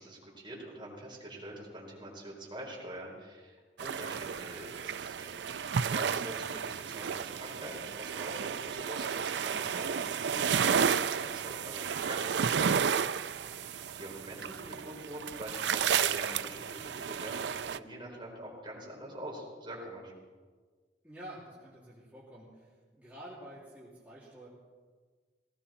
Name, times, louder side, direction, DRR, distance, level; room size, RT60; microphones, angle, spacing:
voice 1, 0.0-13.0 13.3-13.7 13.9-20.1, right 1 dB, 25° right, -3 dB, 4.3 m, -45 dB
sound 1, 3.8-17.8, right 7 dB, 70° right, 0.4 m, -32 dB
voice 2, 6.2-6.6 21.0-24.5, right 1 dB, 10° right, -9 dB, 3.1 m, -49 dB
18.5 x 17.0 x 4.4 m, 1.5 s
head